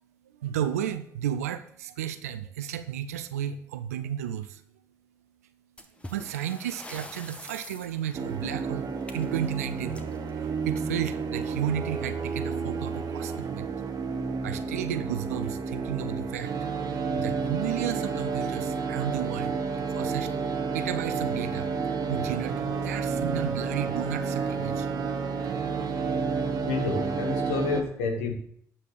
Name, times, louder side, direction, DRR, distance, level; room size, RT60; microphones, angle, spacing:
voice 1, 0.4-4.6 6.1-10.1 10.3-13.7 14.4-16.7 17.2-19.6 19.9-21.7 22.1-24.9, right 10 dB, 90° right, 12 dB, 0.6 m, -33 dB
sound 1, 5.8-11.2 12.4-12.6 12.9-13.0 13.6-13.7 14.4-14.7, left 1 dB, 15° left, 1.8 m, -46 dB
sound 2, 8.1-27.8, right 5 dB, 55° right, 1.7 m, -30 dB
voice 2, 26.6-28.3, left 4 dB, 85° left, 5 dB, 1.5 m, -29 dB
9.9 x 8.7 x 6.3 m, 0.65 s
hypercardioid pair, 45°, 8 cm